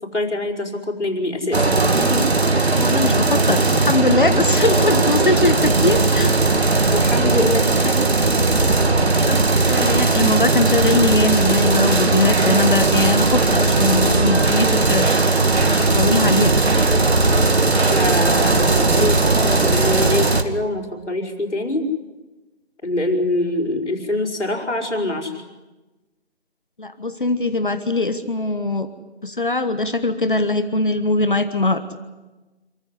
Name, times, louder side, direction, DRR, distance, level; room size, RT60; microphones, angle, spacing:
voice 1, 0.0-2.9 6.9-8.2 16.1-16.5 17.9-21.9 22.8-25.4, left 1 dB, 85° left, 2 dB, 5.0 m, -25 dB
sound 1, 1.5-20.4, right 3 dB, 65° right, 2.3 m, -17 dB
voice 2, 2.7-6.4 9.2-15.2 15.6-16.5 26.8-28.9 29.2-31.8, left 2 dB, 45° left, 10 dB, 1.4 m, -21 dB
27.5 x 14.5 x 9.9 m, 1.2 s
figure-of-eight pair, 175°, 34 cm